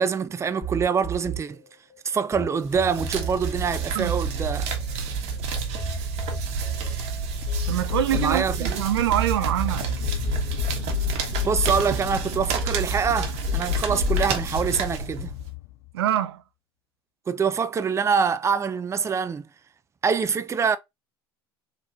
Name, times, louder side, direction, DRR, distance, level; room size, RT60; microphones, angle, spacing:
voice 1, 0.0-1.6 2.0-4.7 8.1-8.8 11.5-15.3 17.3-19.5 20.0-20.8, right 6 dB, 20° right, 0.5 m, -25 dB
sound 1, 0.6-2.4 2.7-9.3 9.6-12.3 12.6-14.3, left 3 dB, 20° left, 1.5 m, -30 dB
sound 2, 2.6-15.5, right 5 dB, 60° right, 1.3 m, -30 dB
voice 2, 7.7-9.9 15.9-16.4, right 12 dB, 85° right, 0.5 m, -25 dB
sound 3, 9.5-16.0, left 17 dB, 75° left, 0.4 m, -37 dB
3.9 x 3.0 x 2.4 m
hypercardioid pair, 80°, 13 cm